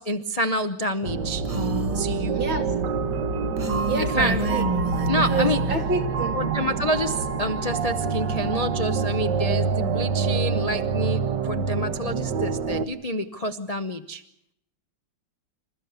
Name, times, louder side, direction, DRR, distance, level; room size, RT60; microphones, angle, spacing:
voice 1, 0.0-1.4 1.9-2.4 4.0-4.4 5.1-5.6 6.3-14.2, equal, 65° left, 7 dB, 0.3 m, -28 dB
sound 1, 1.0-12.9, right 4 dB, 65° right, 1.7 m, -26 dB
Female speech woman speaking, 1.4-2.1 3.6-5.8, right 4 dB, 35° right, 0.6 m, -29 dB
voice 2, 2.3-2.6 3.9-4.7 5.3-6.4, right 4 dB, 85° right, 2 dB, 3.7 m, -27 dB
27.5 x 14.0 x 8.1 m, 0.77 s
omnidirectional pair, 2.1 m